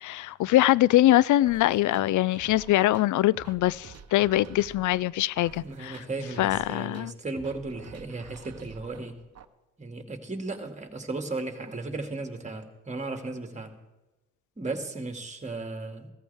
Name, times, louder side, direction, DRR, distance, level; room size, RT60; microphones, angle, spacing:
voice 1, 0.0-6.0 6.4-7.1, left 15 dB, 60° left, 0.4 m, -23 dB
sound 1, 1.4-9.4, right 7 dB, 45° right, 1.0 m, -49 dB
voice 2, 5.6-9.2 9.8-13.7 14.6-16.1, right 3 dB, 20° right, 2.3 m, -35 dB
16.0 x 14.0 x 3.5 m
supercardioid pair, 65°, 35 cm